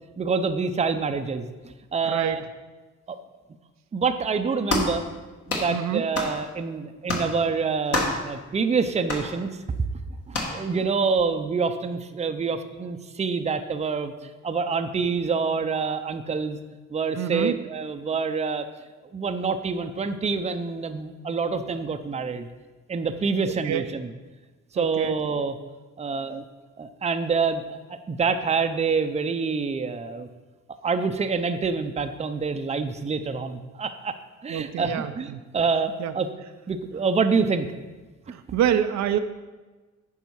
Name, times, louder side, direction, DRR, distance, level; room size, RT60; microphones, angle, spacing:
voice 1, 0.2-2.4 3.1-3.2 3.9-5.0 5.5-9.6 10.3-14.1 14.4-16.6 16.9-18.6 19.1-22.5 22.9-24.1 24.7-25.5 26.0-26.4 26.8-30.3 30.8-34.2 34.4-36.3 36.7-37.7, right 5 dB, 20° right, 8 dB, 0.6 m, -26 dB
voice 2, 2.0-2.4 5.7-6.0 17.2-17.6 23.6-23.8 24.8-25.2 34.5-35.4 36.0-36.1 38.3-39.2, right 10 dB, 65° right, 9 dB, 0.5 m, -26 dB
sound 1, 4.7-5.0 5.5-5.7 6.1-6.4 7.1-7.3 7.9-8.2 9.1-9.3 10.3-10.6, left 2 dB, 50° left, 1.7 m, -26 dB
9.2 x 5.4 x 4.6 m, 1.3 s
cardioid pair, 90°, 30 cm